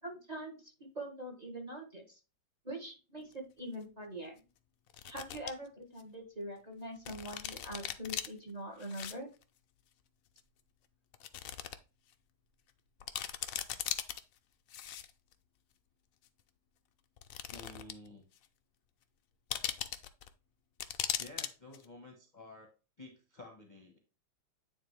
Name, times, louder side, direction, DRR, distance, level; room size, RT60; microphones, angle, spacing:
voice 1, 0.0-2.2 2.6-4.4 5.0-9.3, right 1 dB, 20° right, 2 dB, 1.6 m, -43 dB
sound 1, 3.3-3.4 4.9-5.5 6.0-6.1 7.1-8.3 8.8-9.1 9.4-9.5 10.4-10.5 11.1-11.8 12.1-12.2 12.7-12.8 13.0-14.2 14.7-15.3 16.3-16.4 17.2-18.1 18.4-18.5 19.5-20.3 20.8-21.5 21.7-21.9, left 10 dB, 80° left, 0.7 m, -38 dB
voice 2, 17.5-18.2 21.2-24.0, left 2 dB, 30° left, 3 dB, 1.0 m, -52 dB
9.6 x 4.0 x 3.2 m, 0.31 s
omnidirectional pair, 2.2 m